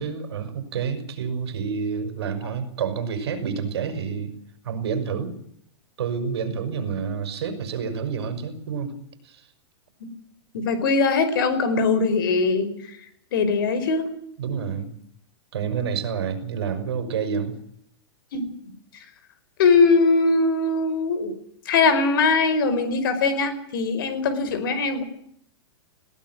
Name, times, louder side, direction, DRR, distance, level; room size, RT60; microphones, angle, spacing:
voice 1, 0.0-4.3 4.6-5.4 6.0-9.0 9.2-9.5 14.4-15.0 15.5-17.5, right 6 dB, 70° right, 9 dB, 5.7 m, -28 dB
voice 2, 10.5-12.7 13.3-14.1 18.3-18.5 19.6-21.4 21.6-25.0, left 4 dB, 55° left, 12 dB, 5.0 m, -21 dB
21.0 x 17.0 x 9.5 m, 0.68 s
supercardioid pair, 175°, 14 cm